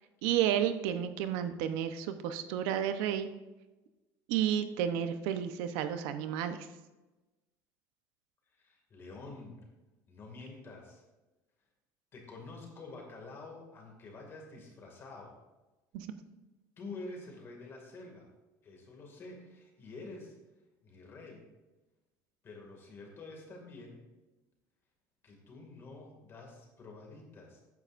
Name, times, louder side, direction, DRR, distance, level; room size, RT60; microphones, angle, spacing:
voice 1, 0.2-3.3 4.3-6.6 15.9-16.1, right 10 dB, 80° right, 9 dB, 0.8 m, -31 dB
voice 2, 8.6-9.6 10.1-11.0 12.1-15.3 16.8-18.3 18.6-20.3 20.8-21.4 22.4-24.0 25.2-27.6, left 3 dB, 30° left, 1 dB, 2.2 m, -48 dB
13.5 x 9.7 x 2.6 m, 1.1 s
cardioid pair, 150°, 8 cm